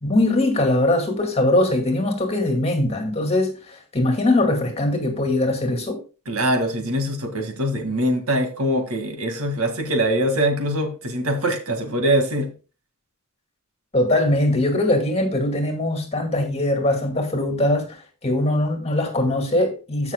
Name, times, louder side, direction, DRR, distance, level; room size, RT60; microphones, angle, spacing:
voice 1, 0.0-6.0 13.9-20.1, left 1 dB, 30° left, 2.1 m, -21 dB
voice 2, 6.3-12.5, right 1 dB, 75° right, 1.9 m, -23 dB
14.5 x 6.0 x 2.2 m
head